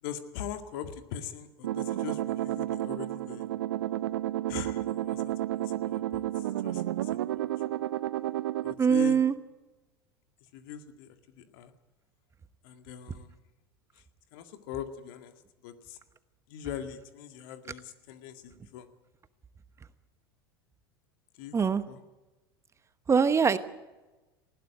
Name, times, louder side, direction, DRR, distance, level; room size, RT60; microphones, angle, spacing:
voice 1, 0.0-3.5 4.5-7.5 8.6-9.2 10.5-11.7 12.6-13.4 13.9-14.0 14.3-16.0 16.5-18.9 21.3-22.0, left 9 dB, 60° left, 8 dB, 2.0 m, -42 dB
sound 1, 1.6-8.7, right 14 dB, 70° right, 0.6 m, -31 dB
voice 2, 8.8-9.3 21.5-21.8 23.1-23.6, right 6 dB, 20° right, 13 dB, 1.1 m, -22 dB
20.0 x 16.0 x 9.2 m, 1.1 s
hypercardioid pair, 85°, 13 cm